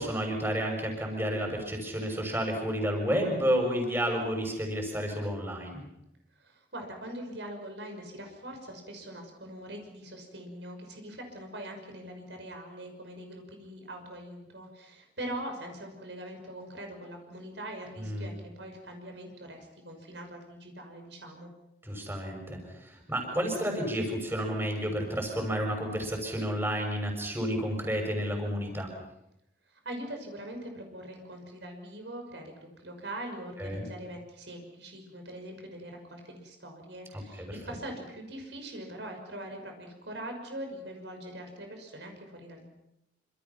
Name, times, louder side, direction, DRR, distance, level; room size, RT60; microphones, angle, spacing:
voice 1, 0.0-5.8 18.0-18.2 21.8-28.9 33.6-33.8 37.4-37.5, equal, 15° right, 2 dB, 6.7 m, -31 dB
voice 2, 6.4-21.5 29.7-42.6, right 1 dB, 75° right, 4 dB, 6.0 m, -42 dB
27.0 x 27.0 x 5.9 m, 0.83 s
head